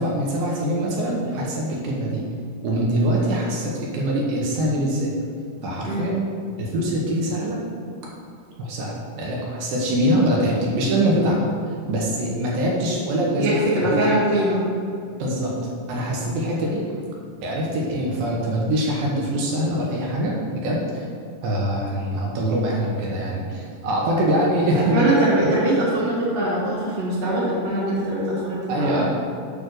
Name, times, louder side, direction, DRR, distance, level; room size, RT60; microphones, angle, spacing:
voice 1, 0.0-2.2 2.6-5.1 5.6-6.1 6.6-7.6 8.6-11.4 11.9-14.1 15.2-15.6 15.9-16.9 17.4-21.1 21.4-25.1 28.7-29.0, right 1 dB, 70° right, -3 dB, 2.4 m, -23 dB
voice 2, 5.9-6.2 13.4-14.6 24.7-29.0, right 1 dB, 45° right, -8 dB, 0.7 m, -22 dB
8.7 x 3.4 x 6.4 m, 2.4 s
omnidirectional pair, 4.8 m